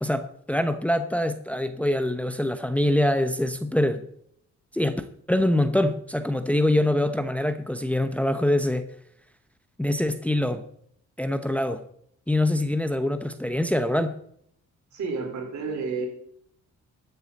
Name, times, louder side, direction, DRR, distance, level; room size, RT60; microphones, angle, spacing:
voice 1, 0.0-4.0 4.7-8.9 9.8-10.6 11.2-11.8 12.3-14.2, left 1 dB, 5° left, 9 dB, 0.8 m, -24 dB
voice 2, 14.9-16.1, right 4 dB, 70° right, 0 dB, 4.5 m, -30 dB
13.5 x 9.3 x 4.1 m, 0.68 s
cardioid pair, 90°, 30 cm